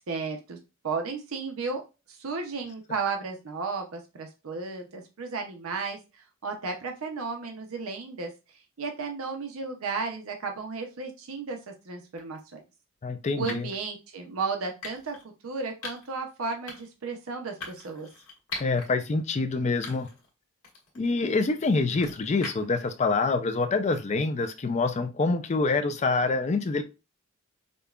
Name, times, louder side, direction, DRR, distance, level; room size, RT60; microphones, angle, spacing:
voice 1, 0.1-0.6 0.8-1.8 2.1-8.3 8.8-12.6 13.3-15.2 15.4-18.1, right 4 dB, 85° right, 3 dB, 0.6 m, -34 dB
sound 1, 12.2-12.4 13.5-13.8 14.8-15.2 15.8-16.2 16.7-17.0 17.6-18.9 19.3-19.4 19.8-20.3 20.6-22.8, left 3 dB, 85° left, 1.5 m, -41 dB
voice 2, 13.0-13.7 18.6-20.1 21.0-26.8, left 3 dB, 35° left, 9 dB, 0.4 m, -26 dB
5.1 x 2.2 x 2.3 m, 0.29 s
head